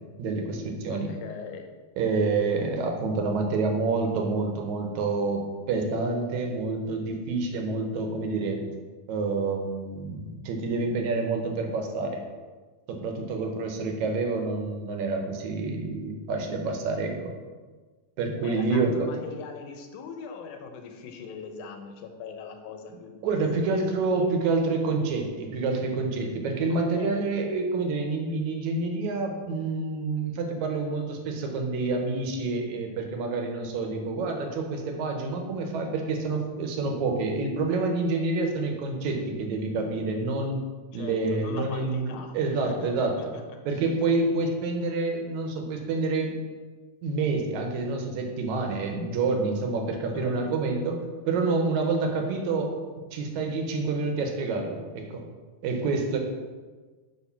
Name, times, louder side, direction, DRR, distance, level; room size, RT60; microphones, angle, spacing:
voice 1, 0.2-1.1 2.0-5.4 5.7-8.6 9.1-12.2 12.9-17.3 18.2-19.1 23.2-40.6 40.9-43.2 43.7-46.3 47.0-52.7 53.1-55.2 55.6-56.2, right 3 dB, 75° right, 3 dB, 2.2 m, -28 dB
voice 2, 0.9-1.7 18.4-23.2 23.6-24.3 26.7-27.3 40.9-42.3 42.6-43.4 50.1-50.4, left 5 dB, 90° left, 5 dB, 2.3 m, -41 dB
8.4 x 3.8 x 5.7 m, 1.4 s
omnidirectional pair, 3.4 m